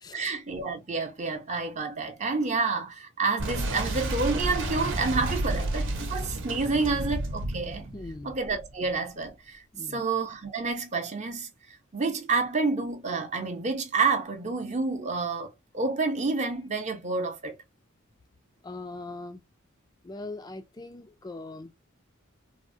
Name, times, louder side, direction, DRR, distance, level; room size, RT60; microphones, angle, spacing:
voice 1, 0.1-7.9 8.2-9.6 9.9-17.6, right 4 dB, 35° right, 0.7 m, -29 dB
Boom, 3.4-9.0, right 1 dB, 65° right, 0.8 m, -31 dB
voice 2, 7.9-8.3 9.7-10.0 18.6-19.4 20.0-21.7, left 2 dB, 20° left, 0.3 m, -40 dB
3.4 x 2.0 x 2.5 m
head